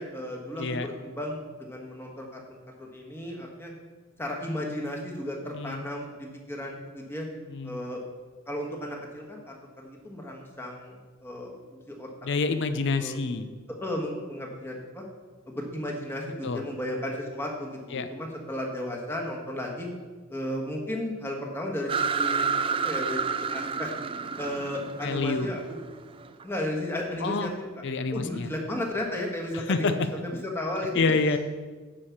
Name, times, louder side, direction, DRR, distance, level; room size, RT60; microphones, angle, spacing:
voice 1, 0.0-2.4 2.8-3.7 4.2-7.3 7.6-8.0 8.5-12.1 13.0-13.2 13.8-15.0 15.5-19.9 20.3-23.2 23.5-23.9 24.4-25.8 26.4-27.8 28.1-29.9 30.2-31.0, left 1 dB, 10° left, -1 dB, 1.4 m, -34 dB
voice 2, 12.2-13.5 16.4-16.6 17.9-18.1 25.0-25.5 27.2-27.5 27.8-28.5 29.5-29.9 30.9-31.4, left 4 dB, 55° left, 10 dB, 0.5 m, -27 dB
sound 1, 21.9-26.4, right 5 dB, 25° right, 0.3 m, -30 dB
9.7 x 4.9 x 7.2 m, 1.4 s
head